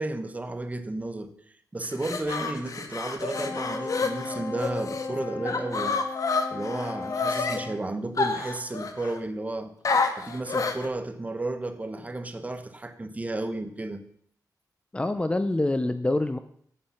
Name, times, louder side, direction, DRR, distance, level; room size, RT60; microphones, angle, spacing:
voice 1, 0.0-1.3 1.7-6.0 6.5-9.7 10.2-14.0, right 2 dB, 20° right, 10 dB, 1.1 m, -33 dB
sound 1, 1.8-5.1 5.4-7.6 8.2-9.2 9.8-10.9, left 4 dB, 55° left, 1.4 m, -29 dB
Wind instrument woodwind instrument, 3.3-7.8, left 3 dB, 30° left, 1.4 m, -36 dB
voice 2, 14.9-16.4, left 2 dB, 15° left, 10 dB, 0.5 m, -25 dB
13.5 x 8.8 x 5.7 m, 0.64 s
wide cardioid pair, 140°, 7 cm